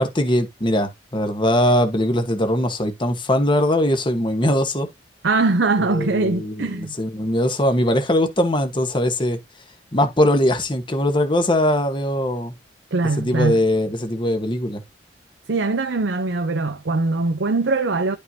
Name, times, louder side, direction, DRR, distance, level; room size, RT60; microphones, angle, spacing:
voice 1, 0.0-4.9 5.9-9.4 9.9-12.5 13.2-14.8, left 1 dB, 25° left, 1.2 m, -21 dB
voice 2, 5.2-7.0 12.9-13.6 15.5-18.2, right 3 dB, 75° right, 0.7 m, -21 dB
11.0 x 5.4 x 2.8 m
head